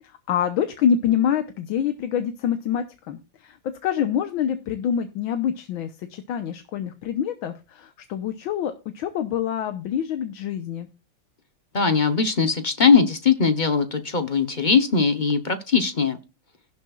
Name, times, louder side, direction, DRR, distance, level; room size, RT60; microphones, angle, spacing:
voice 1, 0.3-3.6 3.8-10.9, left 8 dB, 80° left, 8 dB, 1.7 m, -26 dB
voice 2, 11.7-16.2, left 5 dB, 40° left, 9 dB, 0.7 m, -20 dB
17.0 x 7.2 x 2.4 m, 0.31 s
omnidirectional pair, 2.2 m